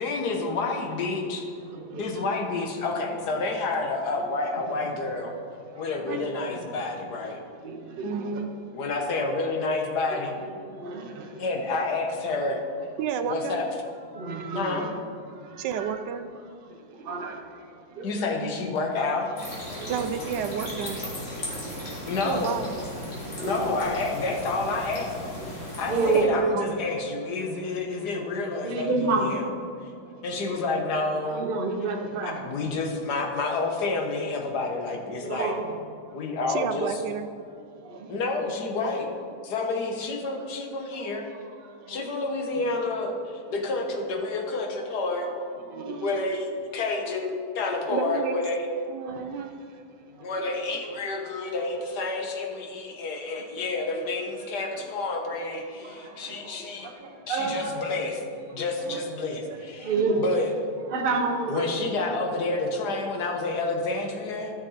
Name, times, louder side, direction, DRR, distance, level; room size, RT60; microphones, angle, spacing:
voice 1, 0.0-1.4 1.9-5.3 5.8-7.4 8.7-10.3 11.4-12.6 13.3-13.7 14.5-14.9 18.0-19.3 22.0-22.6 23.4-25.3 25.8-29.4 30.2-31.4 32.2-35.5 36.1-37.0 38.1-39.1 39.4-41.3 41.9-45.3 46.0-48.6 50.2-56.9 57.3-58.2 58.5-59.9 60.2-60.5 61.5-64.5, left 3 dB, 60° left, 2 dB, 1.5 m, -29 dB
voice 2, 1.7-2.0 4.5-4.6 6.0-6.6 7.6-8.4 10.4-11.4 14.1-14.9 15.3-16.0 16.7-17.7 17.9-18.1 19.8-20.0 21.5-22.1 23.4-23.7 25.4-26.3 28.6-29.4 30.3-30.6 31.2-32.4 35.2-35.7 37.8-38.2 40.9-41.1 41.8-42.0 45.2-45.4 45.7-46.1 49.1-49.5 50.2-50.5 55.8-58.0 58.6-59.0 59.4-60.2 60.9-61.8, right 3 dB, 40° right, 3 dB, 0.8 m, -31 dB
voice 3, 8.0-8.5 13.0-13.6 15.6-16.3 19.9-21.1 22.2-22.6 26.1-26.2 26.5-26.9 36.5-37.3 47.9-48.3 48.9-49.5, right 7 dB, 70° right, 9 dB, 1.1 m, -31 dB
sound 1, 19.4-26.2, left 1 dB, 30° left, 2.4 m, -37 dB
13.5 x 5.9 x 4.2 m, 2.5 s
omnidirectional pair, 2.1 m